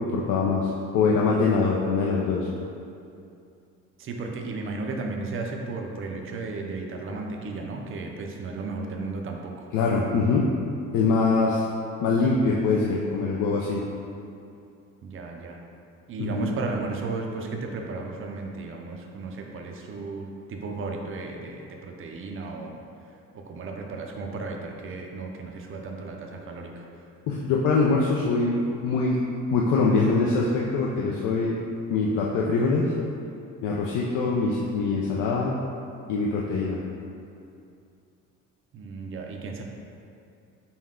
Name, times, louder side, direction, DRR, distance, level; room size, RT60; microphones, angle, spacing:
voice 1, 0.0-2.5 9.7-10.5 10.9-11.6 12.0-13.8 16.2-16.5 27.3-29.2 29.5-31.6 31.9-32.9 33.6-35.6 36.1-36.8, left 4 dB, 75° left, -3 dB, 0.5 m, -23 dB
voice 2, 4.0-9.7 15.0-15.6 16.1-22.8 23.0-27.1 38.7-39.6, right 3 dB, 40° right, 1 dB, 0.5 m, -34 dB
5.4 x 2.2 x 3.6 m, 2.5 s
cardioid pair, 140°, 32 cm